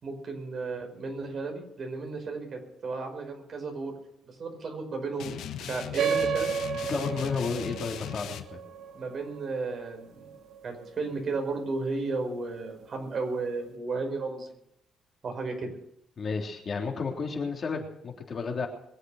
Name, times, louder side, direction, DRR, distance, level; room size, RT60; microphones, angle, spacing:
voice 1, 0.0-3.9 4.2-6.6 8.9-10.3 10.6-14.5 15.2-15.7, right 3 dB, 50° right, 3 dB, 5.5 m, -34 dB
sound 1, 5.2-8.4, left 10 dB, 80° left, 1.3 m, -38 dB
sound 2, 6.0-10.9, right 6 dB, 70° right, 1.1 m, -32 dB
voice 2, 6.7-8.6 16.2-18.7, left 4 dB, 45° left, 2 dB, 3.5 m, -32 dB
22.5 x 8.1 x 6.6 m, 0.76 s
cardioid pair, 90°, 0 cm